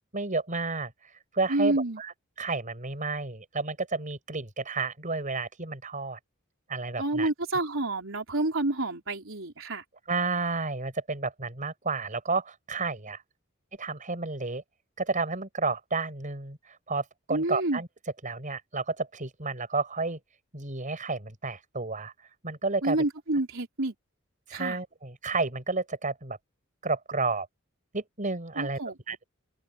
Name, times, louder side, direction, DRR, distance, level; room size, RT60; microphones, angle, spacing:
voice 1, 0.1-2.1 2.4-6.2 6.7-7.3 10.1-13.2 13.8-14.6 15.0-17.9 18.2-20.2 20.5-22.1 22.4-23.0 24.5-26.4 26.8-27.5 27.9-28.8 29.1-29.2, right 3 dB, 40° right, 5.4 m, -31 dB
voice 2, 1.5-2.0 7.0-9.8 17.3-17.8 22.8-23.9 24.5-24.8 28.6-28.9, right 2 dB, 70° right, 4.5 m, -28 dB
head